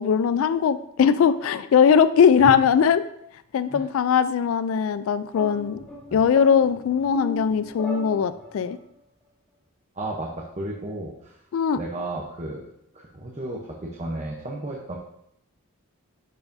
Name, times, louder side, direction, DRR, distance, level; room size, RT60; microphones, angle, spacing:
voice 1, 0.0-3.0 3.5-5.8 6.1-8.8 11.5-11.8, left 7 dB, 70° left, 13 dB, 0.3 m, -20 dB
sound 1, 5.3-8.8, left 1 dB, 5° left, 1.4 m, -38 dB
voice 2, 9.9-11.4 11.7-12.6 12.9-15.0, right 1 dB, 30° right, -1 dB, 0.7 m, -33 dB
10.5 x 4.8 x 2.6 m, 0.76 s
head